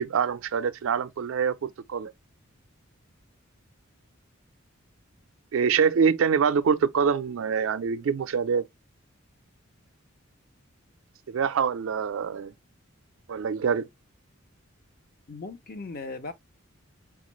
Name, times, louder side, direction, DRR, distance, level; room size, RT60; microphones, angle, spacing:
voice 1, 0.0-2.1 5.5-8.7 11.3-12.5 13.3-13.9, right 6 dB, 70° right, 0.4 m, -25 dB
voice 2, 15.3-16.3, left 3 dB, 45° left, 0.6 m, -37 dB
4.4 x 2.4 x 3.0 m
head